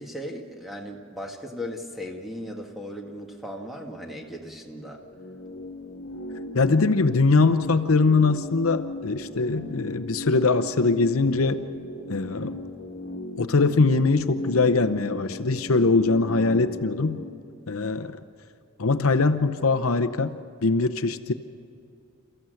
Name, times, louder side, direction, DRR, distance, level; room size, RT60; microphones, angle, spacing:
voice 1, 0.0-5.0, equal, ahead, 1 dB, 1.9 m, -37 dB
sound 1, 4.8-17.3, left 2 dB, 45° left, 1.8 m, -37 dB
voice 2, 6.5-11.6 12.1-12.5 13.4-17.2 17.7-18.2 18.8-20.3 20.6-21.3, left 3 dB, 75° left, 8 dB, 0.8 m, -22 dB
29.0 x 14.5 x 7.8 m, 2.5 s
head